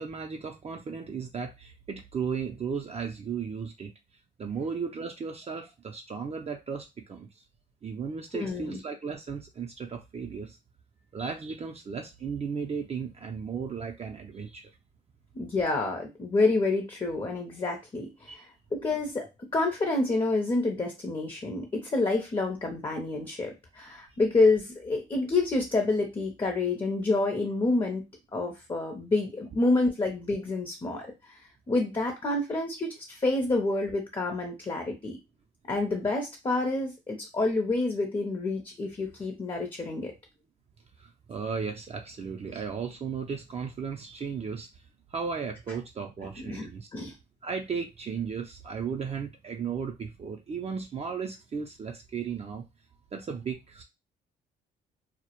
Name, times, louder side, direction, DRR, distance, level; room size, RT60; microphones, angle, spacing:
voice 1, 0.0-3.9 4.4-7.4 7.8-10.6 11.1-14.7 18.3-18.4 41.0-44.8 45.1-46.9 47.4-52.7 53.1-53.8, right 6 dB, 35° right, 3 dB, 0.4 m, -35 dB
voice 2, 8.3-8.8 15.3-28.0 28.3-35.2 35.7-40.1 46.4-47.1, left 2 dB, 25° left, 2 dB, 0.6 m, -28 dB
2.1 x 2.0 x 2.9 m, 0.24 s
supercardioid pair, 70°, 19 cm